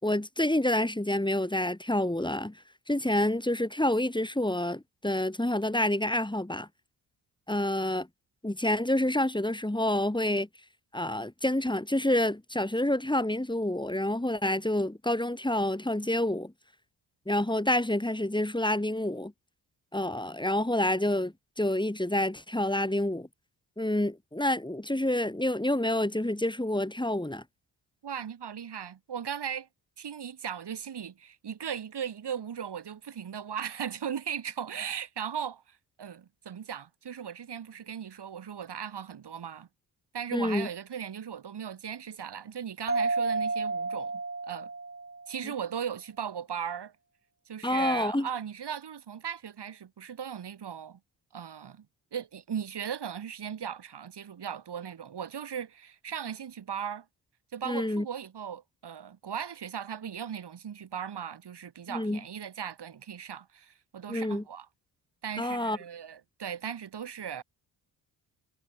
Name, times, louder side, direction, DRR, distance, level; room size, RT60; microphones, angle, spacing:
voice 1, 0.0-2.6 2.9-6.7 7.5-8.1 8.4-10.5 10.9-16.5 17.3-19.3 19.9-23.3 23.8-27.4 40.3-40.7 47.6-48.3 57.7-58.0 61.9-62.2 64.1-64.4 65.4-65.8, left 1 dB, 10° left, 6.1 m, -28 dB
voice 2, 28.0-29.7 30.0-39.7 40.1-44.7 45.3-46.9 47.5-51.0 51.3-51.9 52.1-57.1 57.5-64.7 65.2-67.4, right 8 dB, 55° right, 4.7 m, -37 dB
Mallet percussion, 42.9-45.4, right 3 dB, 25° right, 5.6 m, -31 dB
supercardioid pair, 50°, 47 cm